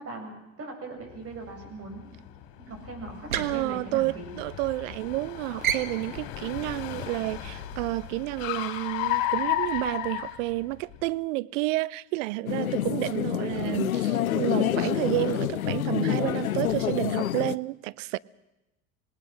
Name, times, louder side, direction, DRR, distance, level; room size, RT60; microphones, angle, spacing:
voice 1, 0.0-2.1 2.6-4.3 12.6-12.9, right 3 dB, 35° right, 7.9 m, -40 dB
Car, 1.2-11.0, left 13 dB, 60° left, 3.1 m, -34 dB
sound 1, 3.1-4.7 5.0-5.3 5.6-8.1, right 8 dB, 85° right, 1.5 m, -34 dB
voice 2, 3.3-18.2, right 20 dB, 65° right, 0.8 m, -30 dB
sound 2, 12.5-17.6, left 11 dB, 90° left, 0.8 m, -27 dB
26.5 x 19.0 x 6.4 m
hypercardioid pair, 80°, 41 cm